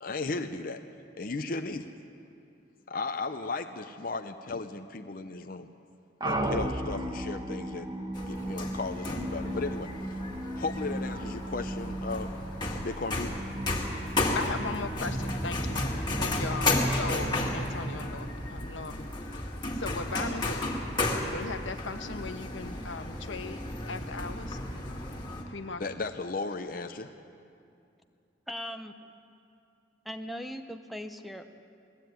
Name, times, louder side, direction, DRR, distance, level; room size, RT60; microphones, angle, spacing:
voice 1, 0.0-0.8 1.2-1.9 2.9-5.7 6.2-7.9 8.2-9.9 10.6-12.3 12.8-13.3 25.8-27.1, left 3 dB, 45° left, 6 dB, 0.7 m, -35 dB
sound 1, 6.2-19.1, right 1 dB, 20° right, 1.2 m, -36 dB
sound 2, 8.1-25.4, left 2 dB, 25° left, 2.2 m, -33 dB
voice 2, 14.3-19.1 19.4-19.5 19.7-20.7 21.2-23.6 23.9-24.6 25.5-26.0, left 4 dB, 85° left, 7 dB, 1.2 m, -38 dB
voice 3, 28.5-29.0 30.0-31.6, equal, ahead, 7 dB, 0.6 m, -39 dB
19.5 x 14.5 x 9.3 m, 2.6 s
head